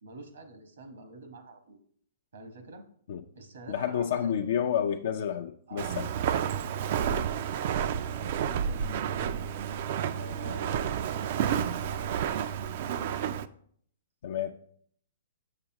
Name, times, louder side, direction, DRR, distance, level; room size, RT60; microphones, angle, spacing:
voice 1, 0.0-1.8 2.3-2.8 3.3-4.3 5.7-7.0 8.1-9.4 10.2-13.1, right 2 dB, 80° right, 5 dB, 1.4 m, -47 dB
voice 2, 3.7-6.1 7.1-7.3 14.2-14.5, left 8 dB, 65° left, 2 dB, 0.5 m, -30 dB
Walk footsteps, 5.8-13.5, right 9 dB, 55° right, 0.4 m, -30 dB
6.9 x 6.6 x 2.9 m, 0.63 s
hypercardioid pair, 135°, 0 cm